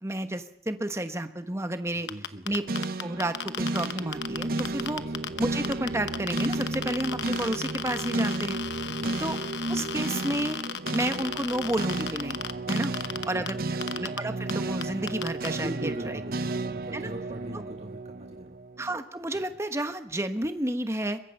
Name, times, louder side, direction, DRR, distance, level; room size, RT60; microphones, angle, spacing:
voice 1, 0.0-2.1 2.5-5.0 5.4-8.6 9.2-9.4 9.7-10.6 10.9-12.4 12.7-12.9 13.3-13.6 14.0-15.9 16.9-17.1 18.8-21.2, right 1 dB, 15° right, 8 dB, 1.2 m, -31 dB
voice 2, 2.0-2.5 4.9-5.1 8.9-9.2 13.0-13.8 15.5-18.6 19.3-19.4, right 1 dB, 40° right, 2 dB, 1.5 m, -40 dB
sound 1, 2.1-5.4 5.6-13.5 13.8-14.2 14.5-14.6 14.8-15.5, left 8 dB, 85° left, 1.0 m, -34 dB
sound 2, 2.7-19.0, right 2 dB, 55° right, 0.8 m, -33 dB
23.0 x 21.5 x 5.5 m, 0.70 s
head